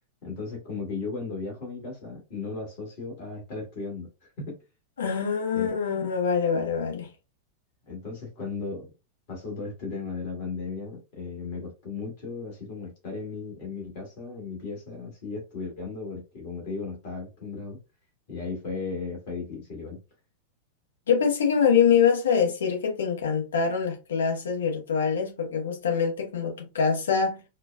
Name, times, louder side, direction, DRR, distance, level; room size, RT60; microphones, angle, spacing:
voice 1, 0.2-4.6 5.5-5.7 7.8-8.9 9.3-17.8 18.3-20.0, left 4 dB, 50° left, 1.6 m, -36 dB
voice 2, 5.0-7.1 21.1-27.4, left 6 dB, 65° left, 0.9 m, -24 dB
4.3 x 2.3 x 2.2 m
figure-of-eight pair, 90°, 0 cm